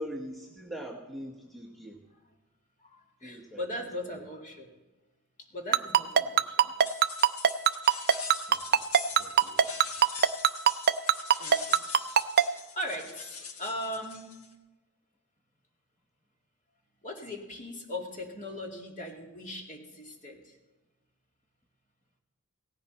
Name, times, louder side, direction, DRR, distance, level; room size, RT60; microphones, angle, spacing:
voice 1, 0.0-2.1 3.2-4.3 8.5-8.9 9.2-9.8, equal, ahead, -1 dB, 1.0 m, -43 dB
voice 2, 2.8-4.7 5.5-6.7 11.4-11.8 12.4-14.3 17.0-20.5, left 1 dB, 35° left, 1 dB, 2.3 m, -39 dB
Ringtone, 5.7-12.4, right 8 dB, 45° right, 0.4 m, -20 dB
sound 1, 6.8-14.5, left 6 dB, 75° left, 1.5 m, -42 dB
17.5 x 15.5 x 4.2 m, 1.1 s
head